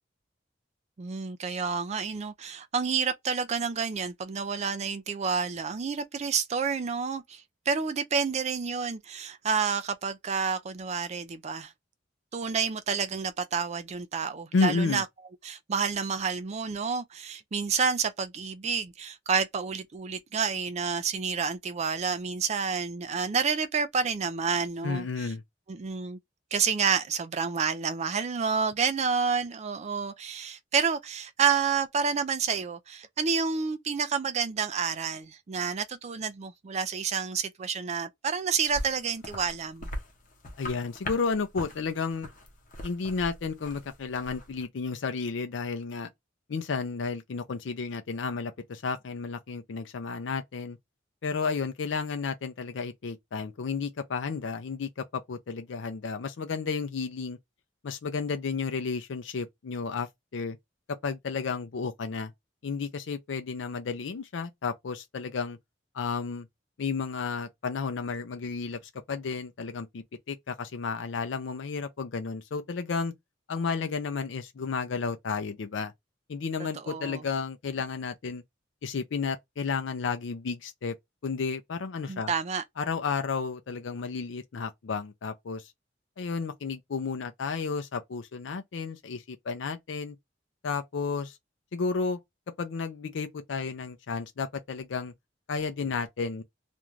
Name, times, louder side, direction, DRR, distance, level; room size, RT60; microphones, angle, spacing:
voice 1, 1.0-11.7 12.3-15.0 15.4-25.3 25.7-26.2 26.5-39.9 76.9-77.2 82.1-82.6, right 6 dB, 35° right, 0.4 m, -29 dB
voice 2, 14.5-15.0 24.8-25.4 40.6-42.3 42.8-46.1 46.5-50.8 51.2-57.4 57.8-60.6 60.9-62.3 62.6-65.6 65.9-66.5 66.8-68.8 69.1-73.1 73.5-75.9 76.3-78.4 78.8-80.9 81.2-82.3 82.8-85.7 86.2-90.2 90.6-91.4 91.7-92.2 92.6-95.1 95.5-96.4, left 5 dB, 80° left, 0.5 m, -32 dB
sound 1, 38.7-44.7, left 1 dB, 45° left, 0.7 m, -41 dB
2.5 x 2.3 x 3.0 m
head